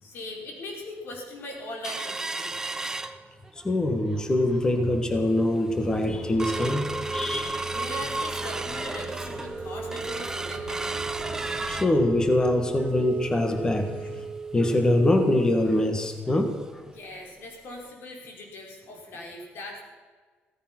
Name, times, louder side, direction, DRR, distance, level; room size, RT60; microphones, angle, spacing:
voice 1, 0.0-2.6 7.7-10.9 16.9-19.8, left 2 dB, 60° left, 0 dB, 5.0 m, -40 dB
sound 1, 1.8-3.7 4.1-4.2 4.5-4.9 5.4-5.5 5.8-16.3 16.7-16.8 17.1-17.3 17.8-17.9, right 3 dB, 15° right, 0.8 m, -34 dB
voice 2, 3.6-7.6 11.4-13.9 14.5-16.5, left 1 dB, 15° left, 6 dB, 1.6 m, -24 dB
sound 2, 5.7-14.2, right 1 dB, 40° left, 5.5 m, -42 dB
16.5 x 14.0 x 6.1 m, 1.5 s
cardioid pair, 150°, 4 cm